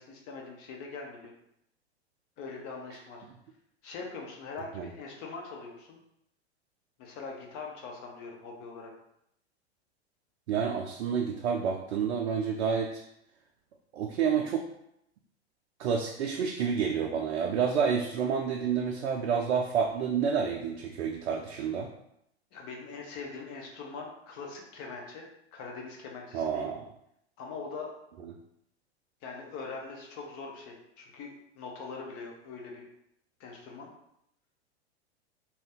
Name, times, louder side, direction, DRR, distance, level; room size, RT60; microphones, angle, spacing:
voice 1, 0.0-1.3 2.4-3.2 3.8-6.0 7.0-8.9 22.5-25.3 25.5-26.7 27.4-27.9 29.2-32.9 33.4-33.9, left 4 dB, 40° left, 0 dB, 0.8 m, -42 dB
voice 2, 10.5-13.0 13.9-14.7 15.8-21.9 26.3-26.8, right 6 dB, 75° right, 1 dB, 0.5 m, -29 dB
2.5 x 2.2 x 3.5 m, 0.76 s
hypercardioid pair, 95°, 33 cm